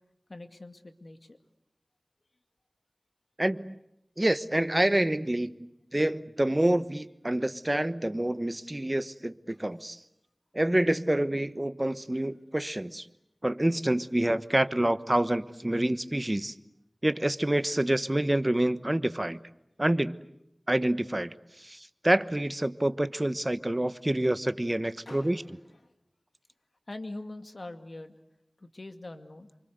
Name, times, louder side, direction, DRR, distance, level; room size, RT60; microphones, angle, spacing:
voice 1, 0.3-1.4 9.5-9.6 25.1-25.9 26.9-28.2 28.6-29.5, left 2 dB, 60° left, 7 dB, 2.3 m, -43 dB
voice 2, 3.4-3.8 4.2-10.0 10.5-13.1 13.4-16.5 17.0-19.4 19.8-20.2 20.7-25.4, right 1 dB, 25° right, 13 dB, 1.2 m, -27 dB
28.0 x 25.5 x 8.0 m, 0.81 s
wide cardioid pair, 60°, 0 cm